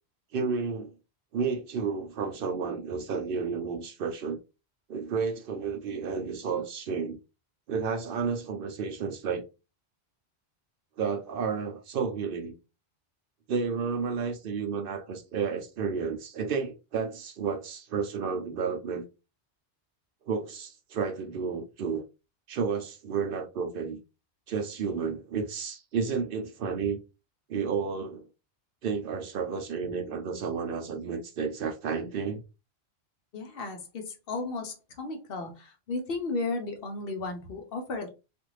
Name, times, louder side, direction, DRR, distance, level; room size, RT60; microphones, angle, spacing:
voice 1, 0.3-0.9 1.3-4.4 4.9-7.2 7.7-9.4 11.0-12.6 13.5-19.0 20.3-22.0 22.5-24.0 24.5-27.0 27.5-28.2 28.8-32.4, right 5 dB, 65° right, 0.7 m, -31 dB
voice 2, 33.3-38.1, left 3 dB, 65° left, 0.9 m, -34 dB
2.5 x 2.5 x 3.1 m
omnidirectional pair, 1.1 m